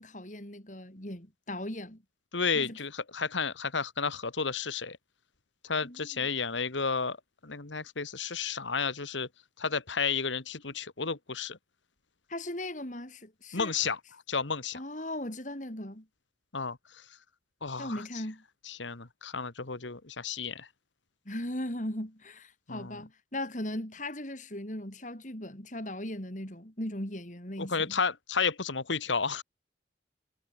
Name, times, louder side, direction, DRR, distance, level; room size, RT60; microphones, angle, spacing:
voice 1, 0.0-2.0 2.5-2.8 5.8-6.3 12.3-13.7 14.7-16.1 17.8-18.4 21.2-28.0, left 1 dB, 40° left, 4.7 m, -38 dB
voice 2, 2.3-5.0 5.6-7.2 7.4-9.3 9.6-11.6 13.5-14.0 14.3-14.8 16.5-17.0 17.6-18.0 18.7-20.7 22.7-23.0 27.6-29.4, left 5 dB, 90° left, 1.8 m, -32 dB
head